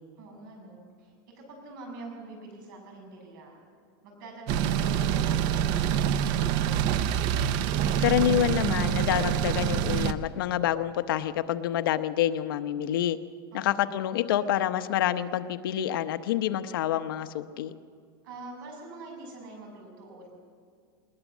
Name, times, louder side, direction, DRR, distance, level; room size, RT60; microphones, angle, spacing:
voice 1, 0.2-3.6 4.0-7.4 13.5-13.9 18.2-20.3, right 2 dB, 55° right, 2 dB, 6.9 m, -45 dB
sound 1, 4.5-10.1, right 9 dB, 35° right, 0.6 m, -26 dB
voice 2, 8.0-13.2 13.5-17.7, left 11 dB, 65° left, 11 dB, 0.9 m, -27 dB
20.5 x 20.0 x 7.3 m, 2.2 s
supercardioid pair, 170°, 13 cm